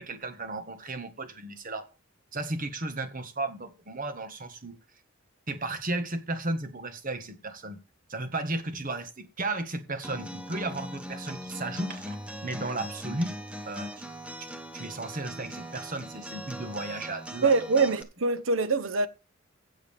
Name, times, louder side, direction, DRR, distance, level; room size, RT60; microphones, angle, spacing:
voice 1, 0.0-1.8 2.3-4.8 5.5-7.8 8.1-13.3 13.7-13.9 14.7-17.9, right 2 dB, 40° right, 1.5 m, -34 dB
Acoustic guitar, 10.0-18.0, equal, 5° right, 1.0 m, -40 dB
voice 2, 17.4-19.1, right 4 dB, 65° right, 1.0 m, -24 dB
16.0 x 6.5 x 3.5 m
head